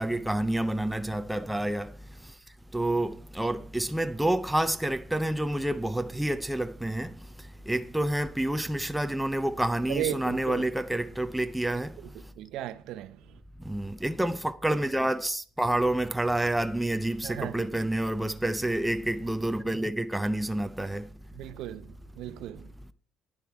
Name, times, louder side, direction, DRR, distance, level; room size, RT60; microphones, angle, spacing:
voice 1, 0.0-2.4 2.7-12.3 13.6-21.1 22.3-22.4 22.8-22.9, right 1 dB, 5° right, 0.4 m, -29 dB
voice 2, 9.9-10.6 12.4-13.2 17.2-17.5 21.4-22.7, right 12 dB, 70° right, 0.7 m, -35 dB
10.5 x 10.0 x 4.6 m
cardioid pair, 175°, 0 cm